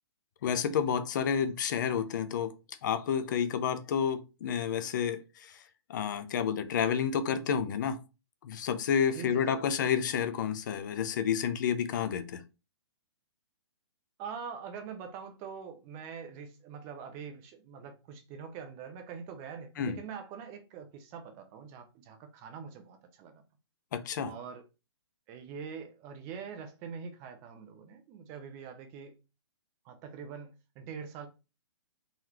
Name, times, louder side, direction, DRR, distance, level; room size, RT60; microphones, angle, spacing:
voice 1, 0.4-2.5 2.8-5.6 5.9-8.0 8.4-12.4 19.8-20.0 23.9-24.3, left 7 dB, 40° left, 0.5 m, -30 dB
voice 2, 9.1-9.4 14.2-23.4 24.3-24.6 25.3-29.2 29.8-31.3, right 6 dB, 20° right, 0.4 m, -44 dB
3.9 x 3.1 x 2.8 m
hypercardioid pair, 160°, 15 cm